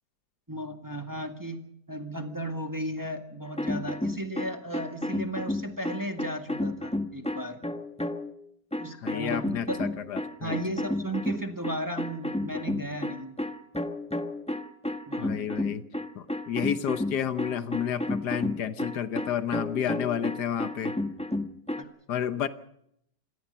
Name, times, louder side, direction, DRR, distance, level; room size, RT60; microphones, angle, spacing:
voice 1, 0.5-1.6 1.9-7.6 8.8-9.9 10.4-13.3 15.1-15.6 21.8-21.9, right 1 dB, 10° right, 5 dB, 1.8 m, -35 dB
sound 1, 3.5-8.4 8.7-21.8, left 1 dB, 5° left, 0.9 m, -32 dB
voice 2, 9.0-10.6 15.2-15.8 16.1-20.9 22.1-22.5, left 9 dB, 75° left, 12 dB, 1.5 m, -31 dB
26.5 x 18.0 x 5.6 m, 0.74 s
omnidirectional pair, 1.8 m